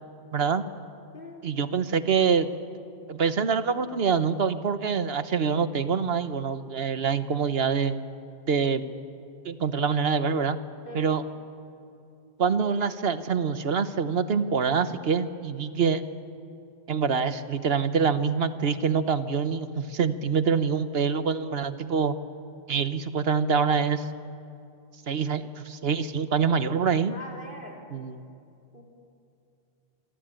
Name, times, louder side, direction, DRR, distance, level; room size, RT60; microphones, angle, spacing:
voice 1, 0.3-0.6 1.4-2.5 3.1-8.0 8.5-8.8 9.4-10.6 10.9-11.2 12.4-16.0 16.9-22.2 22.7-24.1 25.1-27.1 27.9-28.3, right 6 dB, 80° right, 12 dB, 1.2 m, -25 dB
voice 2, 1.1-1.4 10.8-11.0 27.1-27.9 28.7-28.8, left 1 dB, 60° left, -1 dB, 4.7 m, -42 dB
26.5 x 24.0 x 9.0 m, 2.6 s
omnidirectional pair, 1.0 m